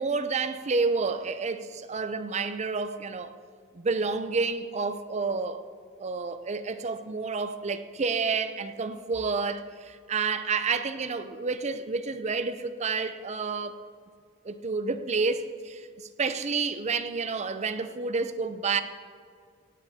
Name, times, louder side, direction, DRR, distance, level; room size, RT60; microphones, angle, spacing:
voice 1, 0.0-3.3 3.7-5.6 6.0-13.8 14.4-18.8, right 4 dB, 35° right, 0.6 m, -29 dB
17.0 x 16.5 x 2.8 m
head